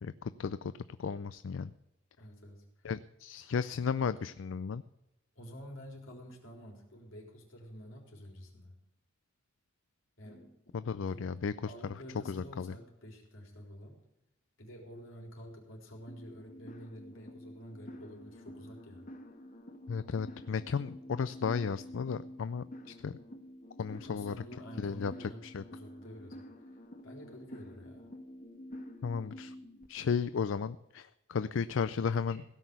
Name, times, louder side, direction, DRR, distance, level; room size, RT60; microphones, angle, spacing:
voice 1, 0.0-0.7 1.0-1.7 2.8-4.8 10.7-12.0 12.3-12.7 19.9-23.2 23.8-24.3 24.8-25.1 25.4-25.6 29.0-29.5 29.9-32.4, left 6 dB, 70° left, 14 dB, 0.4 m, -34 dB
voice 2, 2.2-2.7 3.9-4.2 5.4-8.7 10.2-10.6 11.1-11.2 11.7-14.0 14.6-19.0 23.9-25.4 25.7-26.4 27.0-28.0 32.1-32.5, equal, 90° left, 0 dB, 4.1 m, -49 dB
sound 1, 16.1-29.9, left 1 dB, 40° left, 1.4 m, -49 dB
16.5 x 6.2 x 8.1 m, 0.90 s
head